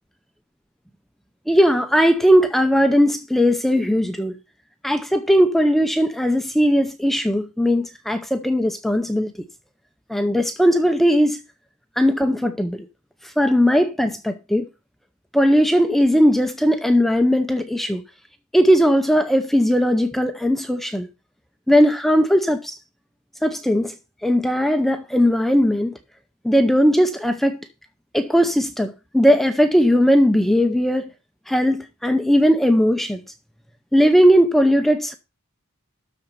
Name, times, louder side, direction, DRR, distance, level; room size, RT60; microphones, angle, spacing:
voice 1, 1.5-4.3 4.8-9.3 10.1-11.4 12.0-12.8 13.2-14.7 15.3-18.0 18.5-21.1 21.7-22.8 23.4-24.0 24.2-26.0 26.4-27.6 28.1-31.1 31.5-33.2 33.9-35.1, equal, ahead, 0.6 m, -18 dB
13.0 x 4.3 x 6.8 m
head